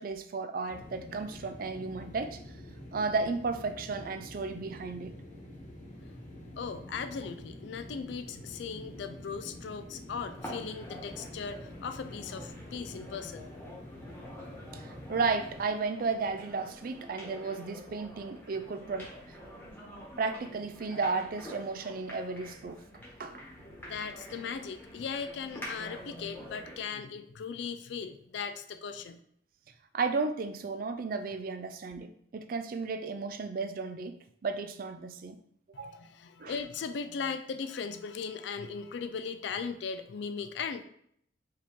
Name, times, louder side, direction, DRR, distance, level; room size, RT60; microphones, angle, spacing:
voice 1, 0.0-2.5 2.9-5.1 14.7-19.4 20.2-22.8 23.2-23.4 29.9-34.1 34.4-35.4 35.8-36.0 36.4-36.6, right 4 dB, 50° right, 9 dB, 0.4 m, -34 dB
sound 1, 0.7-15.6, left 1 dB, 40° left, 1.2 m, -47 dB
voice 2, 6.6-13.5 23.7-29.2 35.7-40.8, left 6 dB, 65° left, 9 dB, 0.4 m, -38 dB
sound 2, 10.4-26.9, equal, 10° left, 1.2 m, -47 dB
4.7 x 2.9 x 3.5 m, 0.67 s
head